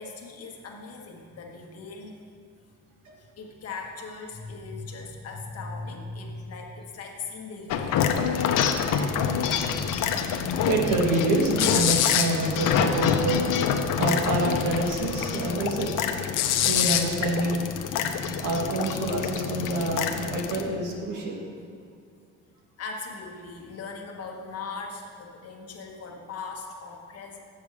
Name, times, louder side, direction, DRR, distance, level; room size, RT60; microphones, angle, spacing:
voice 1, 0.0-2.2 3.2-9.6 22.8-27.4, left 4 dB, 50° left, 1 dB, 1.2 m, -39 dB
sound 1, 7.7-20.6, left 8 dB, 90° left, 0.7 m, -26 dB
voice 2, 10.7-13.5 14.0-15.9 16.6-17.7 18.4-21.4, right 2 dB, 80° right, 1 dB, 1.5 m, -27 dB
7.7 x 7.1 x 4.8 m, 2.3 s
cardioid pair, 135°, 31 cm